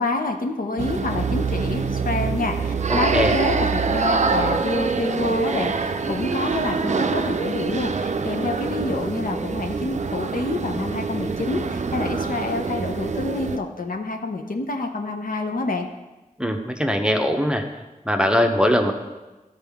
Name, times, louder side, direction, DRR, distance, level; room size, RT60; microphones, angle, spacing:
voice 1, 0.0-15.9, left 3 dB, 75° left, 4 dB, 0.7 m, -28 dB
sound 1, 0.8-13.6, right 4 dB, 55° right, 0.4 m, -25 dB
voice 2, 2.9-3.4 16.4-17.6 18.0-18.9, equal, 5° right, 4 dB, 0.7 m, -21 dB
12.0 x 4.5 x 3.5 m, 1.1 s
wide cardioid pair, 60°, 14 cm